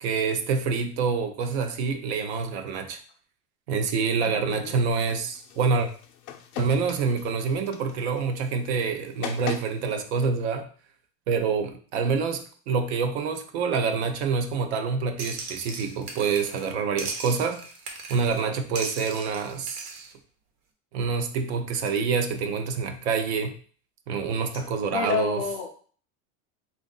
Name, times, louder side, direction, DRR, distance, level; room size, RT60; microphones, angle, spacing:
voice 1, 0.0-3.0 3.7-5.9 6.6-10.7 11.3-17.6 18.1-20.1 20.9-23.6 24.1-25.4, right 5 dB, 50° right, 0.5 m, -27 dB
voice 2, 4.1-4.8 24.5-24.6 24.9-25.7, left 7 dB, 25° left, 0.4 m, -30 dB
sound 1, 4.9-9.9, left 10 dB, 75° left, 0.7 m, -40 dB
sound 2, 15.2-16.7 17.0-18.4 18.8-20.1, right 3 dB, 80° right, 1.1 m, -38 dB
3.6 x 2.5 x 3.8 m
supercardioid pair, 175°, 42 cm